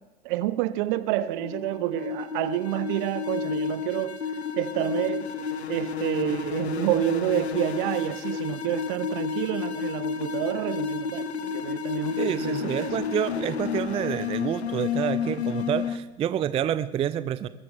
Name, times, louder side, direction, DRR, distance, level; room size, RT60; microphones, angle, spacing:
voice 1, 0.2-4.2 4.6-5.3 5.7-12.9, right 14 dB, 55° right, 1.0 m, -29 dB
sound 1, 1.2-16.0, left 6 dB, 85° left, 0.9 m, -31 dB
voice 2, 12.2-17.5, right 10 dB, 20° right, 0.4 m, -28 dB
21.5 x 14.0 x 3.5 m
figure-of-eight pair, 90°, 32 cm